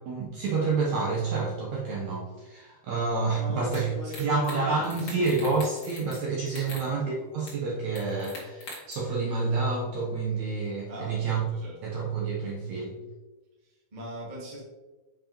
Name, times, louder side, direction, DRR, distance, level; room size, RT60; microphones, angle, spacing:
voice 1, 0.1-3.9 4.2-11.4 11.8-13.0, right 4 dB, 75° right, -3 dB, 1.7 m, -28 dB
voice 2, 3.3-5.3 6.5-6.9 10.9-11.7 13.6-14.6, right 1 dB, 50° right, -5 dB, 0.5 m, -40 dB
sound 1, 3.7-3.8 4.1-4.6 4.8-6.2 6.5-6.9 7.5-7.6 8.0-8.9, left 2 dB, 45° left, 1.3 m, -42 dB
7.6 x 5.0 x 2.9 m, 1.2 s
omnidirectional pair, 4.3 m